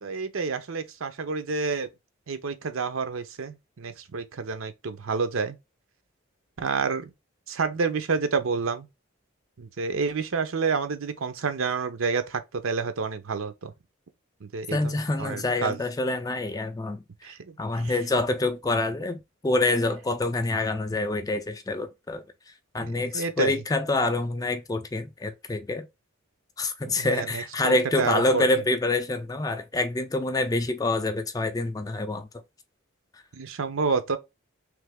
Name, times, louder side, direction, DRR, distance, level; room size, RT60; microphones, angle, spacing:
voice 1, 0.0-1.9 2.3-5.6 6.6-7.1 7.5-8.9 9.6-13.7 14.4-14.9 15.2-15.8 17.2-17.9 22.8-23.5 26.8-28.4 33.3-34.2, right 5 dB, 75° right, 0.6 m, -29 dB
voice 2, 14.7-17.0 17.6-22.2 22.7-25.9 26.6-32.3, left 2 dB, 15° left, 0.3 m, -26 dB
3.3 x 3.0 x 3.5 m
head